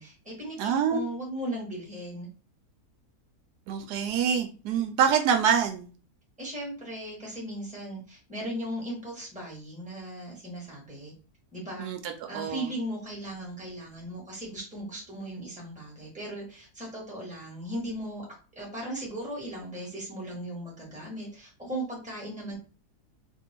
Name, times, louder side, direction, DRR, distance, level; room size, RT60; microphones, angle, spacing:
voice 1, 0.0-2.3 6.4-11.1 11.5-11.9 12.3-18.2 18.5-22.5, right 1 dB, 5° right, -3 dB, 1.3 m, -37 dB
voice 2, 0.6-1.0 3.7-5.9 11.8-12.7, right 7 dB, 80° right, 6 dB, 1.1 m, -26 dB
2.8 x 2.6 x 4.3 m, 0.36 s
omnidirectional pair, 1.7 m